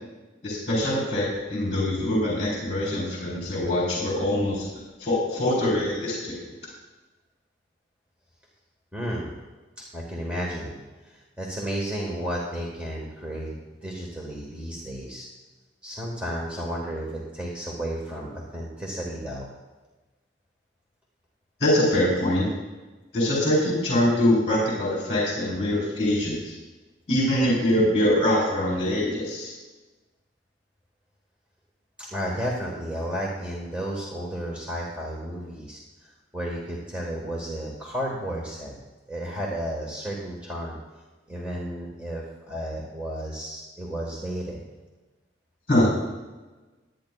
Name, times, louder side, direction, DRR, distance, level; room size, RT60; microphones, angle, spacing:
voice 1, 0.4-4.7 5.0-6.4 21.6-22.5 23.1-26.5 27.1-29.5 45.7-46.0, left 1 dB, 35° left, -4 dB, 4.0 m, -23 dB
voice 2, 8.9-9.3 9.9-10.8 11.0-13.5 13.8-15.3 15.8-19.5 32.0-38.8 39.1-40.8 41.3-44.6, equal, 5° right, -3 dB, 1.4 m, -32 dB
22.0 x 9.6 x 2.3 m, 1.2 s
head